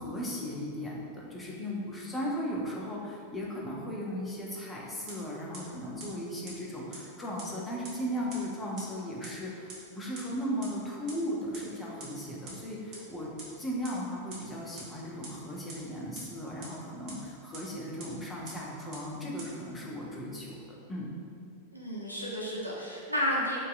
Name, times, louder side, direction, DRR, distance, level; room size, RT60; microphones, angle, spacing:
voice 1, 0.0-13.3 13.6-21.1, equal, 10° left, -4 dB, 0.5 m, -36 dB
sound 1, 5.1-5.2 5.5-5.6 6.0-6.1 6.5-6.6 6.9-7.0 7.4-7.5 7.8-7.9 8.3-8.4 8.8-8.9 9.2-9.3 9.7-9.8 10.2-10.3 10.6-10.7 11.1-11.2 11.5-11.6 12.0-12.1 12.5-12.6 12.9-13.0 13.4-13.5 13.8-13.9 14.3-14.4 14.8-14.9 15.2-15.3 15.7-15.8 16.2-16.3 16.6-16.7 17.1-17.2 17.5-17.6 18.0-18.1 18.5-18.6 18.9-19.0 19.4-19.5, right 3 dB, 40° right, 0.6 m, -43 dB
voice 2, 21.7-23.6, left 1 dB, 90° left, -5 dB, 0.3 m, -32 dB
2.6 x 2.3 x 2.3 m, 2.4 s
figure-of-eight pair, 90°, 0 cm